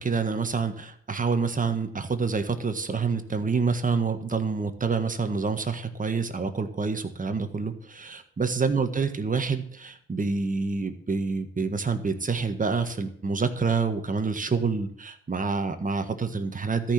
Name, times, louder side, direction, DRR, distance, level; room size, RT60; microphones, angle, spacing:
voice 1, 0.0-16.9, right 4 dB, 25° right, 8 dB, 1.6 m, -27 dB
13.5 x 6.1 x 8.8 m, 0.63 s
cardioid pair, 90°, 30 cm